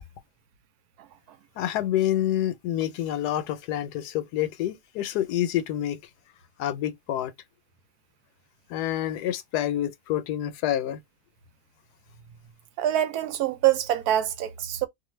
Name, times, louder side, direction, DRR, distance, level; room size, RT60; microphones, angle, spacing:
voice 1, 1.6-6.0 6.6-7.3 8.7-11.0, left 12 dB, 80° left, 1.1 m, -27 dB
voice 2, 12.8-14.9, right 12 dB, 75° right, 1.1 m, -25 dB
2.5 x 2.4 x 3.0 m
omnidirectional pair, 1.7 m